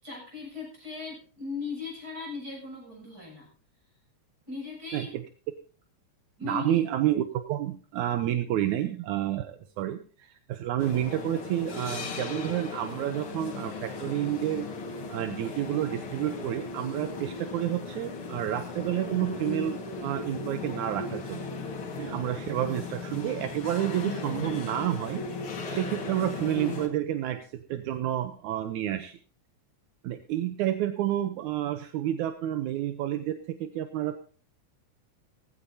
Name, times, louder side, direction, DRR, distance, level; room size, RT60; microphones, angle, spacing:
voice 1, 0.0-3.5 4.5-5.2 6.4-6.8, left 4 dB, 30° right, -1 dB, 8.0 m, -38 dB
voice 2, 4.9-5.2 6.4-14.7 15.1-21.5 22.0-25.2 25.7-29.2 30.0-34.2, right 12 dB, 80° right, 9 dB, 2.2 m, -30 dB
sound 1, 10.8-26.9, left 4 dB, 50° left, 2.4 m, -37 dB
17.0 x 15.5 x 2.7 m, 0.38 s
omnidirectional pair, 3.4 m